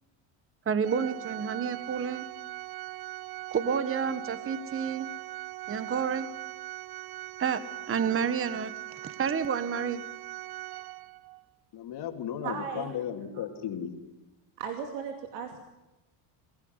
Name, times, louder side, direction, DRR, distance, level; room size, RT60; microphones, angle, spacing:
voice 1, 0.7-2.3 3.5-5.1 5.7-6.3 7.4-8.7 9.0-10.0, right 7 dB, 25° right, 13 dB, 1.4 m, -30 dB
Organ, 0.8-11.4, right 16 dB, 50° right, 1.0 m, -40 dB
voice 2, 11.7-14.0, left 9 dB, 55° left, 4 dB, 3.1 m, -35 dB
voice 3, 12.4-12.9 14.6-15.6, right 7 dB, 90° right, 4 dB, 2.8 m, -36 dB
23.0 x 16.5 x 9.7 m, 1.0 s
cardioid pair, 120°, 48 cm